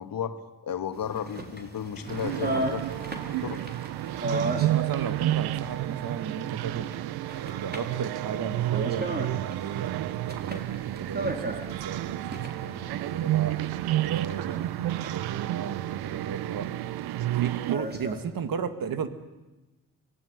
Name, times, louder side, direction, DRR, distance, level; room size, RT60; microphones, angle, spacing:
voice 1, 0.0-2.8 3.4-3.6, left 8 dB, 65° left, 9 dB, 2.0 m, -33 dB
sound 1, 0.9-18.2, right 1 dB, 25° right, 4.0 m, -38 dB
Toilet flush, 1.1-6.1, left 2 dB, 25° left, 5.9 m, -51 dB
sound 2, 2.1-17.8, right 14 dB, 85° right, 0.8 m, -30 dB
voice 2, 4.3-6.9 7.3-13.7 14.0-16.7 17.3-19.1, right 7 dB, 65° right, 10 dB, 2.1 m, -35 dB
25.0 x 17.5 x 9.9 m, 1.1 s
supercardioid pair, 55°, 37 cm